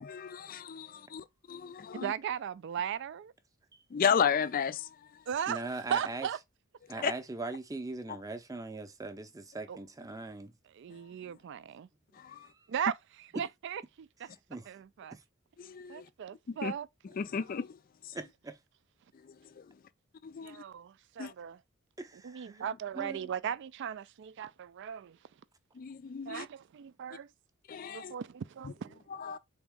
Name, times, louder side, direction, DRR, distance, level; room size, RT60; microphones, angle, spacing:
voice 1, 0.0-2.1 3.9-4.9 7.0-7.1 12.2-12.5 15.6-16.1 16.5-16.7 17.1-17.8 18.1-18.2 19.2-19.7 20.2-20.6 21.2-21.3 25.8-26.5 27.7-28.1 28.6-28.7 29.1-29.4, left 7 dB, 45° left, 0.4 m, -33 dB
voice 2, 1.9-3.3 5.3-5.6 5.9-6.4 6.9-7.0 9.7-9.8 10.7-11.9 12.7-14.3 14.7-15.2 15.9-16.9 20.4-21.6 22.2-25.2 26.3-27.3 27.9-29.4, right 8 dB, 60° right, 0.3 m, -37 dB
voice 3, 5.5-6.3 6.9-10.5 12.3-12.7 13.3-13.4 14.3-14.7 15.1-15.2 18.1-18.6 22.0-22.6 22.9-23.2, right 2 dB, 15° right, 0.6 m, -41 dB
3.9 x 3.5 x 3.5 m
head